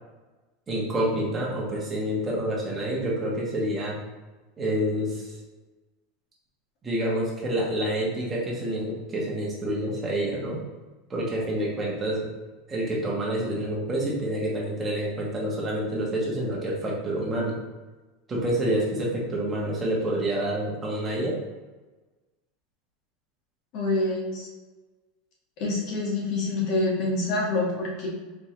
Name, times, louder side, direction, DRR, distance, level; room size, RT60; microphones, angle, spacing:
voice 1, 0.7-4.0 4.6-5.4 6.8-10.6 11.1-12.3 12.7-17.6 18.3-21.4, right 1 dB, 15° right, -4 dB, 1.1 m, -28 dB
voice 2, 23.7-24.5 25.6-28.1, left 2 dB, 45° left, -3 dB, 1.4 m, -26 dB
4.4 x 3.5 x 3.2 m, 1.2 s
supercardioid pair, 160°, 0 cm